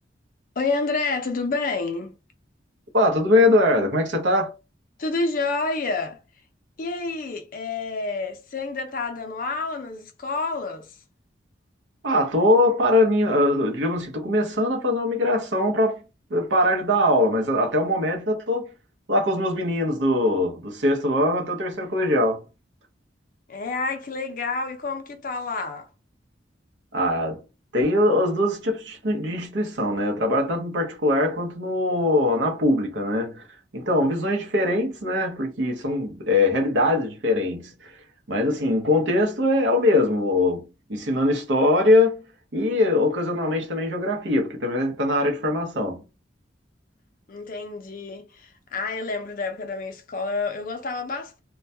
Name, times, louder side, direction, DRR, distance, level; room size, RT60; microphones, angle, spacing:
voice 1, 0.6-2.1 5.0-6.2 6.8-11.0 23.5-25.9 47.3-51.4, left 3 dB, 45° left, 0.5 m, -29 dB
voice 2, 2.9-4.5 12.0-16.0 16.3-18.7 19.1-22.4 26.9-27.4 27.7-33.5 33.7-38.0 38.3-42.2 42.5-46.0, left 1 dB, 75° right, 0.7 m, -22 dB
2.2 x 2.1 x 2.6 m
head